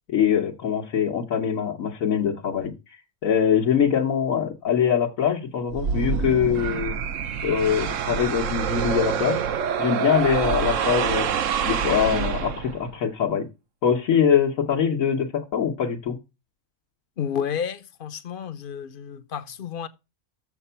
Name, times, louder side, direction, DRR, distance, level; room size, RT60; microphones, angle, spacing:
voice 1, 0.1-2.7 3.2-7.0 7.4-9.4 9.8-11.3 11.6-13.5 13.8-16.2, left 8 dB, 90° left, 1.4 m, -23 dB
sound 1, 5.7-12.9, right 7 dB, 75° right, 1.1 m, -26 dB
voice 2, 17.2-19.9, left 8 dB, 50° left, 0.7 m, -31 dB
6.8 x 5.9 x 5.5 m
omnidirectional pair, 1.4 m